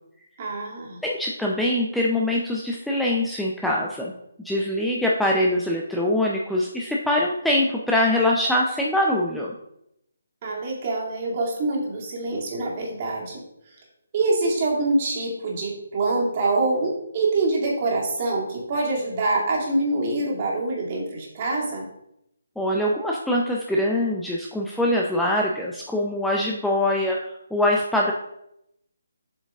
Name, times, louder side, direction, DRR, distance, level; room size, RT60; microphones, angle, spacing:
voice 1, 0.4-1.0 10.4-13.4 14.1-21.9, right 2 dB, 35° right, -2 dB, 2.2 m, -25 dB
voice 2, 1.0-4.1 4.4-9.5 22.6-28.1, left 1 dB, ahead, -3 dB, 0.5 m, -23 dB
7.7 x 5.1 x 3.6 m, 0.80 s
figure-of-eight pair, 145°, 0 cm